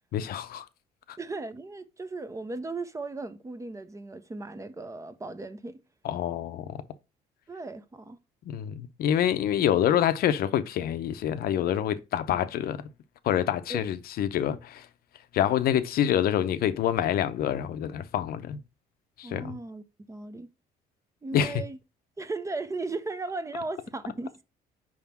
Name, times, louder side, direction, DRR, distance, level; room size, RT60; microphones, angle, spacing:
voice 1, 0.1-0.7 6.0-6.8 8.5-12.8 13.2-14.9 15.3-18.6 19.2-19.6 21.3-21.5, left 10 dB, 65° left, 0.6 m, -26 dB
voice 2, 1.2-5.8 7.5-8.2 13.7-13.8 19.2-20.5 21.2-21.8 22.2-24.4, right 3 dB, 20° right, 0.5 m, -36 dB
5.0 x 3.6 x 5.7 m
cardioid pair, 110°, 17 cm